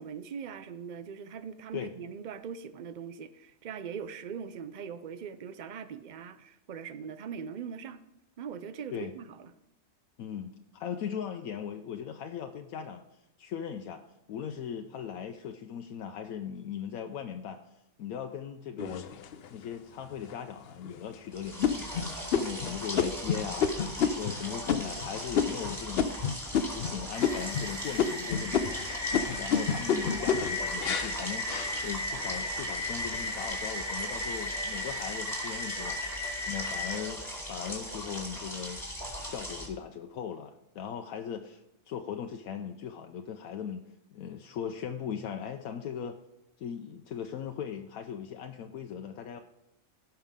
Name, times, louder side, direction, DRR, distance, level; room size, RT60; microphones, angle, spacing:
voice 1, 0.0-8.0 8.4-9.5, right 7 dB, 70° right, 12 dB, 0.4 m, -41 dB
voice 2, 10.2-13.0 13.4-14.0 14.3-17.6 18.0-19.1 19.5-23.7 24.2-26.1 26.5-28.9 29.4-38.8 39.2-43.8 44.1-46.2 46.6-49.4, left 8 dB, 80° left, 5 dB, 1.1 m, -39 dB
sound 1, 18.8-19.6 20.2-20.3 20.8-21.1 21.6-26.9 27.2-27.7 28.0-32.3 32.8-33.3, left 7 dB, 60° left, 0.7 m, -30 dB
sound 2, 21.3-39.7, equal, ahead, 2.5 m, -39 dB
sound 3, 27.1-37.0, left 2 dB, 25° right, 1.7 m, -36 dB
17.0 x 5.8 x 3.6 m, 0.89 s
omnidirectional pair, 1.5 m